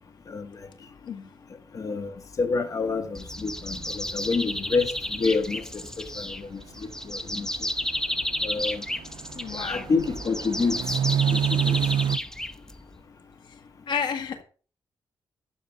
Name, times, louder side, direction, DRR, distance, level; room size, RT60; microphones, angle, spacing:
voice 1, 1.7-4.9 5.2-6.6 7.1-7.5 8.4-8.8 9.5-10.8 11.3-11.7, left 4 dB, 45° left, 1.6 m, -28 dB
sound 1, 3.2-13.0, left 1 dB, 5° left, 0.7 m, -32 dB
sound 2, 3.4-3.5 3.8-3.9 5.2-5.3 7.8-7.9 8.3-8.5 8.9-12.2, right 9 dB, 80° right, 0.4 m, -27 dB
voice 2, 9.3-9.8 13.9-14.4, left 6 dB, 75° left, 1.7 m, -31 dB
12.0 x 7.2 x 5.3 m
cardioid pair, 120°, 8 cm